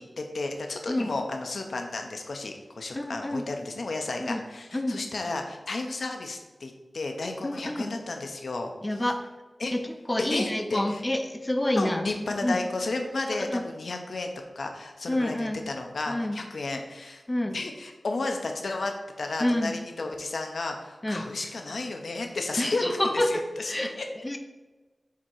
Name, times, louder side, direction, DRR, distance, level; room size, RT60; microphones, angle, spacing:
voice 1, 0.0-8.7 9.6-9.7 10.3-11.0 11.8-17.2 17.5-22.8 23.1-24.0, left 3 dB, 75° left, 4 dB, 0.8 m, -33 dB
voice 2, 2.9-3.4 4.2-4.5 4.7-5.0 7.4-7.9 8.8-9.2 9.7-12.6 13.1-13.6 15.1-15.7 16.1-16.4 17.3-17.5 19.4-19.7 21.0-21.2 22.6-24.0 24.2-24.4, left 1 dB, 20° left, 5 dB, 0.7 m, -28 dB
7.2 x 3.0 x 4.5 m, 1.2 s
wide cardioid pair, 75°, 0 cm